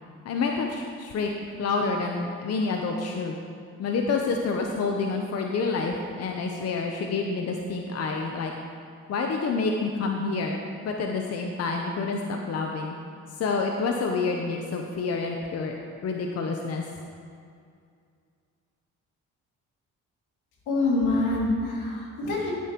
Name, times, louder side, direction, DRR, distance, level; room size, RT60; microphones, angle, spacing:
voice 1, 0.2-1.3 1.6-3.4 3.8-8.5 9.1-12.9 13.4-15.7 16.0-16.8, left 4 dB, 55° left, 2 dB, 0.8 m, -28 dB
voice 2, 20.7-22.5, left 2 dB, 90° left, -4 dB, 2.4 m, -25 dB
13.5 x 8.3 x 3.0 m, 2.3 s
cardioid pair, 90°, 30 cm